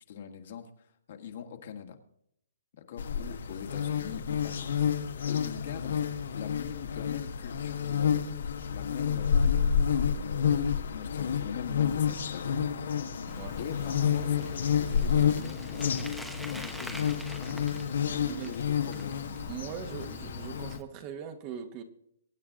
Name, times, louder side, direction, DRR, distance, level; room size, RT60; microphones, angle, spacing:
voice 1, 0.1-2.0 2.7-4.9 5.2-6.0 6.3-8.2 8.7-9.5 10.1-13.0 13.6-17.1 17.4-17.7 18.3-19.2, left 8 dB, 50° left, 5 dB, 1.9 m, -42 dB
sound 1, 3.0-20.8, left 7 dB, 65° left, 1.5 m, -29 dB
Bicycle, 13.3-20.8, equal, ahead, 0.9 m, -46 dB
voice 2, 19.5-21.8, right 8 dB, 25° right, 8 dB, 1.2 m, -40 dB
23.0 x 8.9 x 3.8 m, 0.74 s
hypercardioid pair, 155°, 0 cm